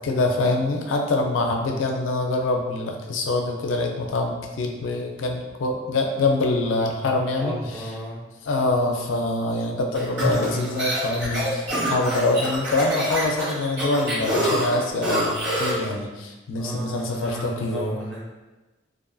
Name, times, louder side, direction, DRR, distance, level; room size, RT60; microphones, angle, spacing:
voice 1, 0.0-7.8 8.5-18.0, left 2 dB, 80° left, 2 dB, 0.4 m, -25 dB
voice 2, 7.4-8.2 16.6-18.2, equal, 5° left, -8 dB, 0.4 m, -34 dB
sound 1, 10.0-15.9, right 1 dB, 75° right, 1.1 m, -26 dB
2.5 x 2.3 x 2.5 m, 1.1 s
head